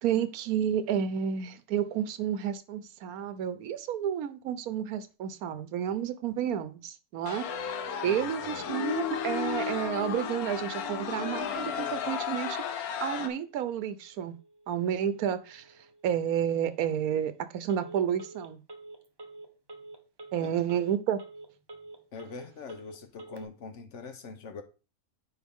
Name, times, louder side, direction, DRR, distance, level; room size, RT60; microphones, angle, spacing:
voice 1, 0.0-7.5 8.0-14.3 14.7-15.7 16.0-18.6 20.3-21.2, right 9 dB, 80° right, 1.2 m, -30 dB
sound 1, 7.3-13.3, left 9 dB, 85° left, 1.2 m, -34 dB
Telephone, 7.4-23.4, right 2 dB, 35° right, 0.4 m, -48 dB
voice 2, 8.0-8.7 20.4-20.5 22.1-24.6, left 4 dB, 60° left, 1.2 m, -44 dB
9.7 x 3.9 x 3.6 m
omnidirectional pair, 1.5 m